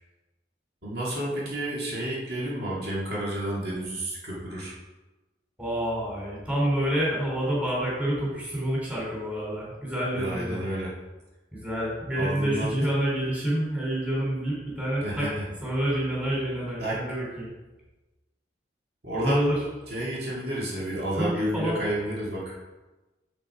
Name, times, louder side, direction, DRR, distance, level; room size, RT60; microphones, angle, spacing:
voice 1, 0.8-4.7 10.2-10.9 12.2-12.8 15.0-15.5 16.8-17.0 19.0-19.6 19.9-22.6, right 1 dB, 60° right, -5 dB, 2.4 m, -30 dB
voice 2, 5.6-10.6 11.5-15.3 15.6-17.5 19.1-19.6 21.1-21.8, right 1 dB, 10° right, -5 dB, 3.1 m, -28 dB
7.8 x 7.2 x 4.8 m, 1.1 s
head